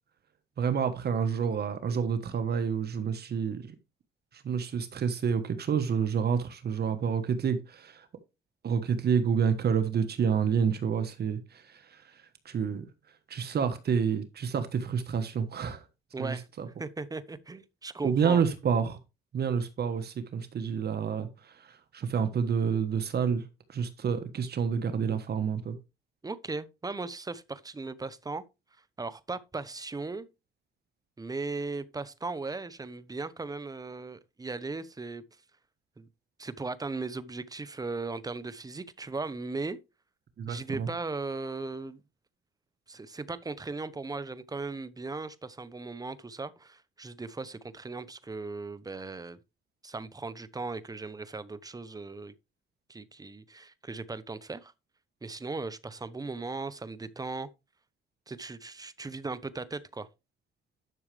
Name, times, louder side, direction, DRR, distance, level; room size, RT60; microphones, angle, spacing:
voice 1, 0.6-3.7 4.3-8.1 8.6-12.8 13.3-15.8 16.2-16.7 18.0-19.0 19.3-23.4 23.7-25.8 40.4-40.9, right 6 dB, 55° right, 1.3 m, -29 dB
voice 2, 16.1-16.5 16.8-18.4 26.2-28.4 29.0-30.3 31.2-35.2 36.0-36.1 36.4-39.8 40.5-42.0 42.9-49.4 49.8-52.3 52.9-54.7 55.2-57.5 58.3-60.1, right 3 dB, 20° right, 0.9 m, -37 dB
11.0 x 6.3 x 3.3 m
cardioid pair, 90°, 20 cm